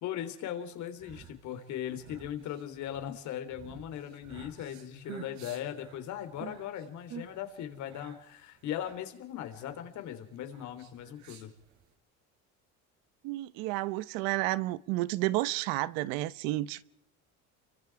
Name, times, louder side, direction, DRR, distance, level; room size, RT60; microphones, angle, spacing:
voice 1, 0.0-11.5, left 10 dB, 60° left, 3.6 m, -39 dB
sound 1, 0.7-11.9, right 6 dB, 55° right, 5.5 m, -50 dB
voice 2, 13.2-16.8, right 18 dB, 90° right, 1.0 m, -31 dB
29.5 x 23.5 x 4.8 m
cardioid pair, 150°, 33 cm